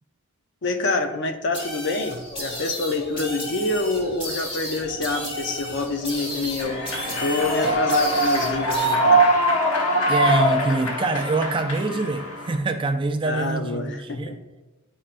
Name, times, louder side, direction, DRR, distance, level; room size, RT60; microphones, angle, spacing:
voice 1, 0.6-9.3 13.2-14.4, left 2 dB, 55° left, 0.6 m, -27 dB
sound 1, 1.5-9.0, equal, 25° left, 1.3 m, -33 dB
Human voice / Clapping / Cheering, 6.6-12.6, right 1 dB, 80° left, 0.9 m, -22 dB
voice 2, 10.1-14.4, right 3 dB, 25° right, 0.3 m, -25 dB
10.0 x 4.4 x 2.5 m
head